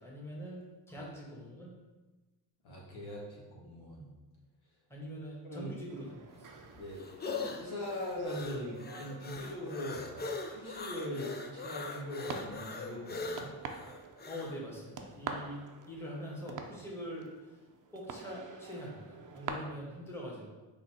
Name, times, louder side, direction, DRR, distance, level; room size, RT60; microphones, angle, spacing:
voice 1, 0.0-1.7 4.9-6.6 14.3-17.6 17.9-20.5, equal, 5° left, -4 dB, 1.5 m, -44 dB
voice 2, 2.6-4.1 5.4-5.7 6.8-7.0 7.6-10.1 10.5-13.5, left 1 dB, 70° left, -3 dB, 1.2 m, -41 dB
sound 1, 5.9-19.5, right 5 dB, 40° right, 0.6 m, -47 dB
sound 2, 6.3-14.6, left 4 dB, 20° left, 0.4 m, -41 dB
4.1 x 2.6 x 4.3 m, 1.2 s
supercardioid pair, 55°, 49 cm